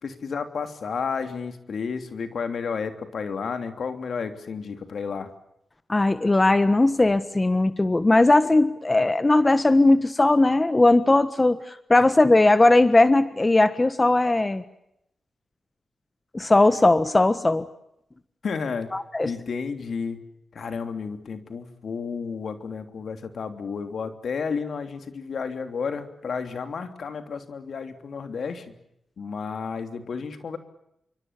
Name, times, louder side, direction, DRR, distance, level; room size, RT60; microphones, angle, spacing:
voice 1, 0.0-5.3 18.4-18.9 19.2-20.2 20.5-28.7 29.2-30.6, left 5 dB, 70° left, 8 dB, 3.1 m, -32 dB
voice 2, 5.9-14.6 16.3-17.6 18.9-19.3, left 2 dB, 25° left, 13 dB, 1.4 m, -19 dB
27.5 x 24.5 x 7.4 m, 0.80 s
cardioid pair, 60°, 0 cm